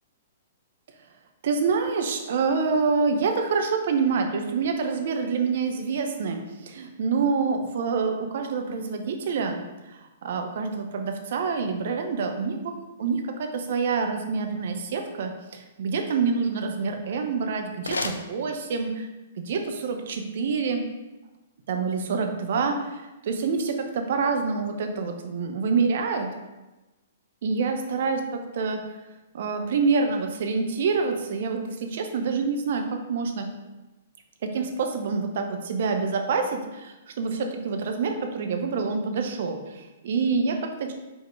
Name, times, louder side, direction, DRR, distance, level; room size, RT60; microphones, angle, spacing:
voice 1, 1.4-9.6 9.9-12.7 13.0-19.1 19.4-20.8 21.7-26.3 27.4-28.8 29.3-33.5 34.4-40.9, right 5 dB, 60° right, 4 dB, 0.8 m, -27 dB
sound 1, 17.1-19.1, left 3 dB, 85° left, 0.5 m, -36 dB
5.3 x 3.9 x 4.6 m, 1.1 s
figure-of-eight pair, 115°, 0 cm